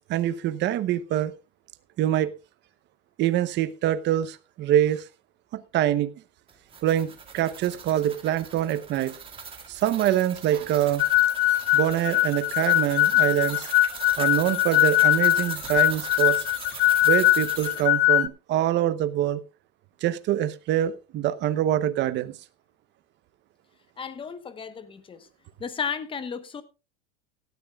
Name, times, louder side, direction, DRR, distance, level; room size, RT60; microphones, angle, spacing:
voice 1, 0.1-1.3 2.0-2.3 3.2-5.0 5.5-6.1 6.8-9.1 9.7-11.0 11.7-13.7 14.2-16.4 17.0-19.4 20.0-22.3, right 12 dB, 35° right, 0.8 m, -25 dB
sound 1, 6.5-17.8, right 6 dB, 15° right, 2.0 m, -40 dB
sound 2, 11.0-18.3, left 16 dB, 75° left, 0.9 m, -21 dB
voice 2, 24.0-25.3 25.6-26.6, left 6 dB, 15° left, 1.0 m, -34 dB
17.5 x 12.5 x 2.3 m
supercardioid pair, 140°, 33 cm